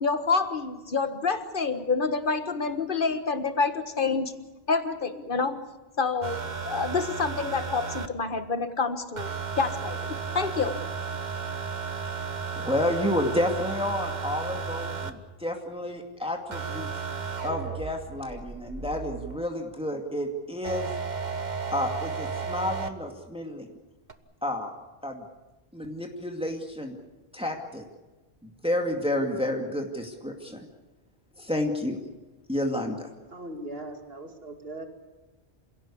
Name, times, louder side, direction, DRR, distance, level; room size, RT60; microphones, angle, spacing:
voice 1, 0.0-4.3 4.7-5.7 6.0-10.8, left 4 dB, 55° left, 10 dB, 1.7 m, -28 dB
sound 1, 6.2-8.1 9.2-15.1 16.5-19.5 20.6-22.9 24.1-24.2, right 5 dB, 45° right, 1.4 m, -34 dB
voice 2, 12.6-16.9 17.4-20.9 21.7-23.7 24.4-24.7 25.0-25.2 25.7-27.0 27.3-27.9 28.4-30.6 31.4-32.0 32.5-33.1, left 1 dB, 5° right, 3 dB, 2.3 m, -30 dB
voice 3, 33.3-34.9, right 1 dB, 65° right, 5 dB, 2.8 m, -39 dB
27.5 x 17.0 x 8.6 m, 1.1 s
omnidirectional pair, 1.1 m